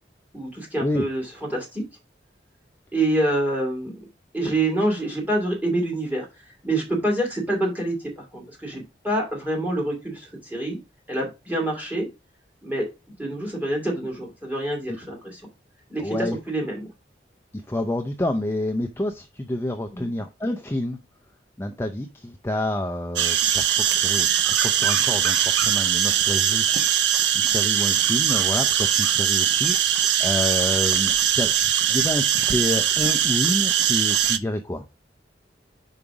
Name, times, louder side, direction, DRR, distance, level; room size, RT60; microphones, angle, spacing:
voice 1, 0.3-1.8 2.9-3.9 4.3-6.3 6.6-10.8 11.1-12.1 12.6-12.9 13.2-15.4 15.9-16.8 19.9-20.1, right 1 dB, 10° right, 0 dB, 2.5 m, -26 dB
voice 2, 16.0-16.4 17.5-21.0 21.6-34.9, left 1 dB, 15° left, 5 dB, 0.4 m, -28 dB
sound 1, 23.2-34.4, right 10 dB, 80° right, 0.6 m, -21 dB
5.4 x 4.9 x 4.7 m, 0.27 s
head